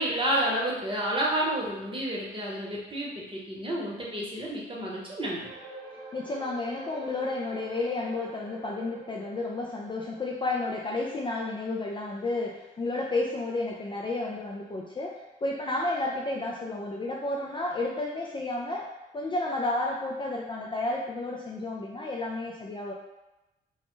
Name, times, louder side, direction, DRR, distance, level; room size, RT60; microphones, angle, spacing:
voice 1, 0.0-5.5, right 1 dB, 25° right, -4 dB, 0.9 m, -30 dB
sound 1, 5.4-18.1 18.4-18.6 19.1-19.2, right 2 dB, 70° right, 0.6 m, -49 dB
voice 2, 6.1-22.9, left 2 dB, 25° left, -2 dB, 0.4 m, -32 dB
2.2 x 2.0 x 3.0 m, 0.98 s
hypercardioid pair, 40°, 21 cm